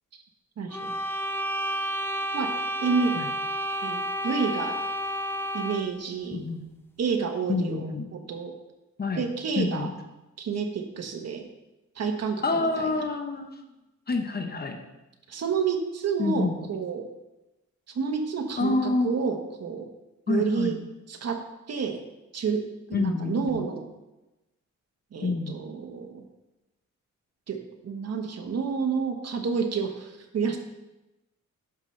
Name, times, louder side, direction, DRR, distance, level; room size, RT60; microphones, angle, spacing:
voice 1, 0.6-1.0 2.3-2.5 2.8-3.1 3.8-4.8 5.5-6.4 7.0-8.5 9.2-9.9 10.4-11.4 12.0-13.0 15.3-17.0 17.9-19.9 20.3-20.8 21.1-21.4 21.7-22.0 22.3-23.9 25.1-26.2 27.5-30.6, right 5 dB, 55° right, 4 dB, 1.1 m, -29 dB
sound 1, 0.7-6.0, equal, 10° left, 0.5 m, -30 dB
voice 2, 6.3-6.6 7.5-8.1 9.0-9.2 9.6-9.9 12.4-13.6 14.1-14.8 16.2-16.6 18.6-19.1 20.3-20.8 22.9-23.6 25.2-25.6, left 3 dB, 30° left, 5 dB, 0.9 m, -27 dB
11.0 x 5.5 x 3.2 m, 1.0 s
wide cardioid pair, 115°, 30 cm